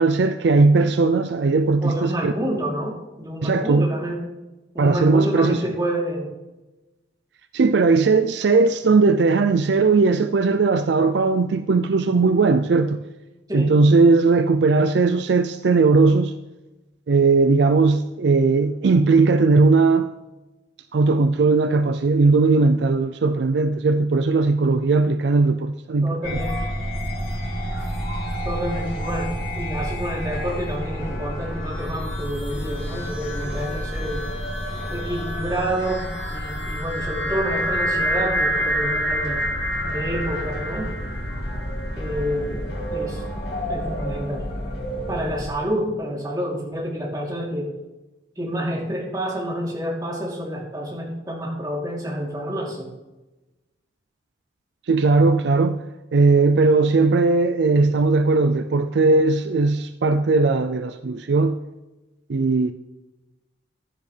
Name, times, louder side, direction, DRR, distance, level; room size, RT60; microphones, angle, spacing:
voice 1, 0.0-2.3 3.4-3.9 4.8-5.6 7.5-13.0 13.5-16.3 17.1-20.1 20.9-26.2 54.9-55.8 56.1-61.5 62.3-62.7, right 3 dB, 65° right, 0.4 m, -18 dB
voice 2, 1.8-4.2 4.7-6.3 13.5-13.8 26.0-26.6 28.4-29.3 29.5-34.2 34.9-39.4 39.8-41.0 42.0-43.2 43.7-44.5 45.1-47.7 48.4-52.9, equal, 20° right, 3.1 m, -28 dB
sound 1, 26.2-45.5, equal, 55° left, 2.7 m, -28 dB
15.5 x 10.5 x 3.3 m
head